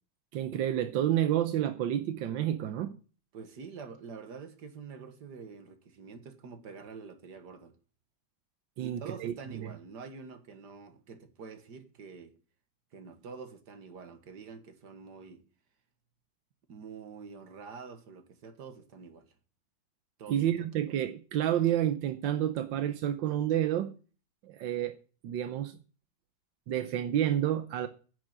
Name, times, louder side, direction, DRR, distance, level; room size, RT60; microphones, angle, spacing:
voice 1, 0.3-2.9 8.8-9.7 20.3-23.9 24.4-24.9 25.2-25.8 26.7-27.9, right 11 dB, 85° right, 1.5 m, -29 dB
voice 2, 3.3-7.8 8.8-12.3 12.9-15.4 16.7-19.3 20.2-20.7, right 5 dB, 60° right, 2.2 m, -46 dB
10.5 x 7.2 x 8.8 m
omnidirectional pair, 2.0 m